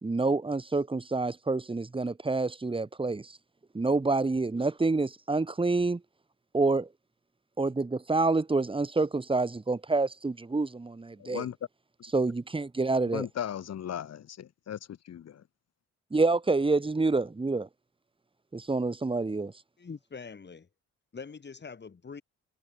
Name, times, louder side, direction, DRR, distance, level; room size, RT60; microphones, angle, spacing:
voice 1, 0.0-3.3 3.7-6.0 6.5-6.9 7.6-11.5 12.1-13.3 16.1-17.7 18.5-19.5, right 3 dB, 15° right, 2.0 m, -27 dB
voice 2, 11.2-11.6 13.1-15.4, left 9 dB, 60° left, 2.0 m, -37 dB
voice 3, 19.8-20.7 21.1-22.2, left 5 dB, 35° left, 5.5 m, -43 dB
cardioid pair, 90°, 30 cm